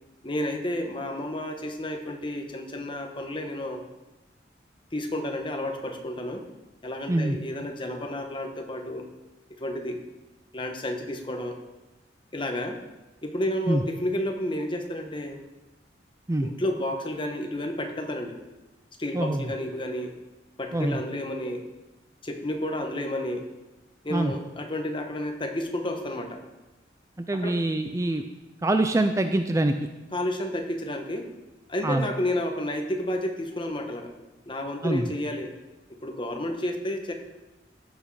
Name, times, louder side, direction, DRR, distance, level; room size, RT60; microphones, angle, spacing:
voice 1, 0.2-3.8 4.9-6.4 6.8-9.1 9.6-10.0 10.5-11.6 12.3-12.8 13.2-15.4 16.4-18.4 19.0-20.1 20.6-21.6 22.2-23.5 24.0-26.4 27.4-27.6 30.1-31.3 31.7-34.1 34.5-35.5 36.0-37.1, left 1 dB, 30° left, 4 dB, 1.2 m, -31 dB
voice 2, 19.1-19.5 20.7-21.0 24.1-24.3 27.2-28.2 28.6-29.7 31.8-32.1 34.8-35.1, right 1 dB, 15° right, 7 dB, 0.4 m, -24 dB
15.5 x 6.3 x 4.8 m, 1.1 s
head